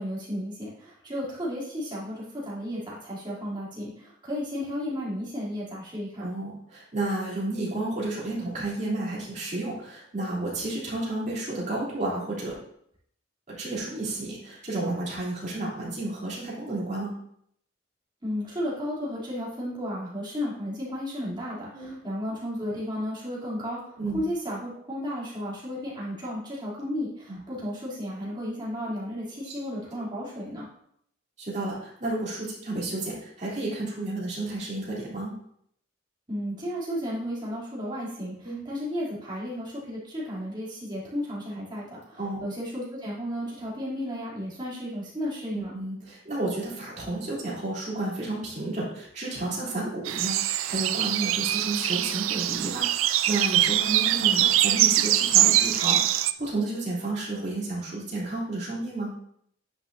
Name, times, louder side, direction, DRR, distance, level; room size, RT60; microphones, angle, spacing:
voice 1, 0.0-6.3 18.2-30.7 36.3-45.7, equal, 25° right, -7 dB, 3.1 m, -33 dB
voice 2, 6.2-12.5 13.5-17.1 21.7-21.9 24.0-24.2 27.3-27.4 29.4-29.5 31.4-35.3 38.4-38.6 42.2-42.4 45.5-59.1, right 2 dB, 40° right, -7 dB, 3.1 m, -31 dB
sound 1, 50.0-56.3, right 13 dB, 90° right, 0.4 m, -23 dB
9.7 x 6.0 x 2.7 m, 0.69 s
head